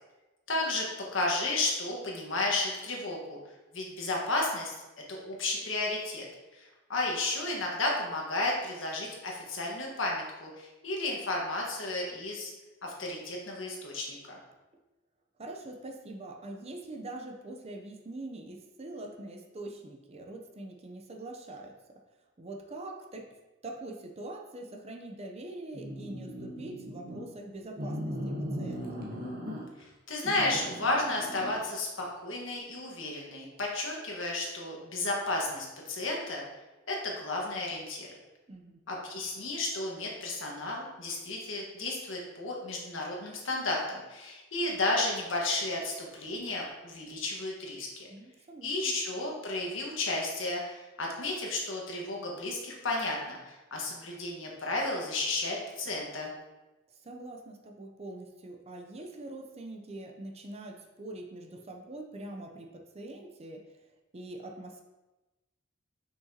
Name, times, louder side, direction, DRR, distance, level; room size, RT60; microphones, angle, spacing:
voice 1, 0.5-0.8 1.1-3.4 3.7-4.7 5.1-6.3 6.5-12.5 12.8-14.4 30.1-36.4 36.9-38.1 38.9-48.1 48.6-56.3, left 2 dB, 70° left, -2 dB, 1.4 m, -33 dB
voice 2, 15.4-21.8 22.4-23.4 23.6-29.0 38.5-38.8 48.1-48.9 57.0-63.7 64.1-64.8, right 2 dB, 30° right, 3 dB, 0.6 m, -43 dB
sound 1, 25.7-27.2 27.7-29.8 30.2-31.6, equal, 50° right, 1.2 m, -38 dB
6.1 x 5.8 x 2.8 m, 1.1 s
head